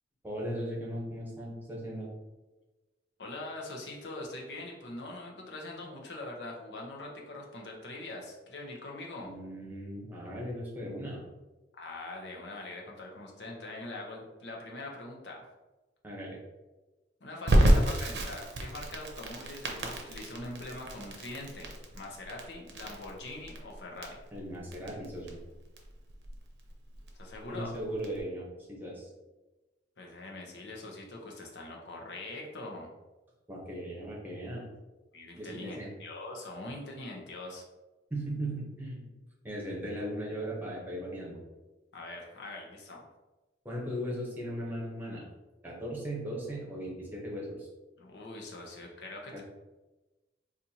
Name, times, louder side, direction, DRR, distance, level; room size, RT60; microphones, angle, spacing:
voice 1, 0.2-2.1 9.2-11.2 16.0-16.4 24.3-25.4 27.4-29.1 33.5-34.6 35.4-35.9 38.1-39.1 39.4-41.4 43.6-45.3 45.6-47.7 49.3-49.4, equal, 10° right, -4 dB, 0.9 m, -38 dB
voice 2, 3.2-9.3 11.7-15.5 17.2-24.2 27.1-27.7 30.0-32.9 35.1-37.6 41.9-43.1 48.0-49.4, left 2 dB, 80° left, 0 dB, 0.7 m, -43 dB
Crackle, 17.5-28.2, right 1 dB, 70° right, 0.6 m, -30 dB
4.1 x 2.5 x 2.8 m, 1.1 s
head